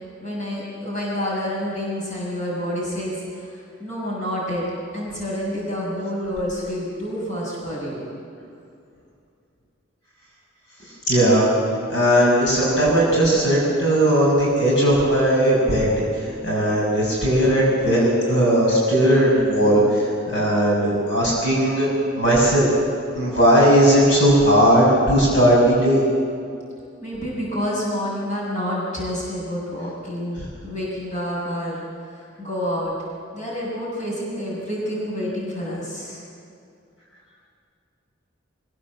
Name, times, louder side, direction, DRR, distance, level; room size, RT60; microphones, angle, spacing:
voice 1, 0.2-4.6 4.9-8.1 27.0-31.8 32.1-32.9 33.3-36.2, equal, 40° left, -5 dB, 7.2 m, -28 dB
voice 2, 11.1-11.5 11.9-15.9 16.4-20.0 20.3-21.9 22.2-22.7 23.1-26.0, equal, 60° left, -5 dB, 6.6 m, -17 dB
24.0 x 17.0 x 7.6 m, 2.5 s
head